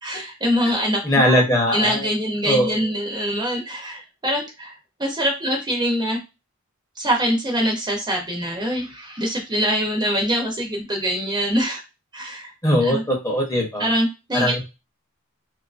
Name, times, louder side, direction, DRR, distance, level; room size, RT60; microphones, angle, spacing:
voice 1, 0.0-1.4 1.7-4.7 5.0-6.2 7.0-11.8 12.1-12.5 12.8-13.0 13.8-14.6, equal, 20° right, 0 dB, 0.6 m, -24 dB
voice 2, 1.0-2.1 2.4-2.9 12.6-13.9 14.3-14.6, equal, 15° left, 0 dB, 0.7 m, -20 dB
2.7 x 2.4 x 2.4 m, 0.26 s
head